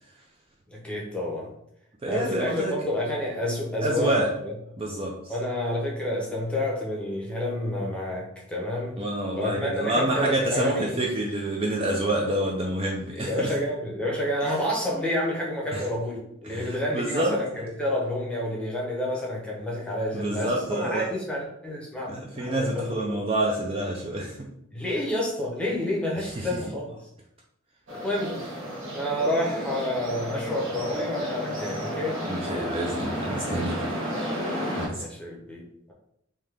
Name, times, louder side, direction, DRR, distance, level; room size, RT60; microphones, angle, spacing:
voice 1, 0.7-1.5 2.1-4.5 5.3-9.0 9.3-11.0 13.1-23.2 24.7-26.9 27.9-28.4 28.9-32.2 34.9-35.6, left 1 dB, 5° left, -3 dB, 0.8 m, -29 dB
voice 2, 2.0-2.7 3.8-4.3 4.8-5.2 9.0-13.5 15.7-15.8 16.4-17.4 20.1-21.1 22.1-24.5 26.4-26.5 32.3-33.8 34.8-35.0, right 1 dB, 25° right, -1 dB, 0.4 m, -28 dB
sound 1, 27.9-34.9, equal, 70° right, 1.4 m, -32 dB
3.6 x 2.7 x 3.3 m, 0.75 s
head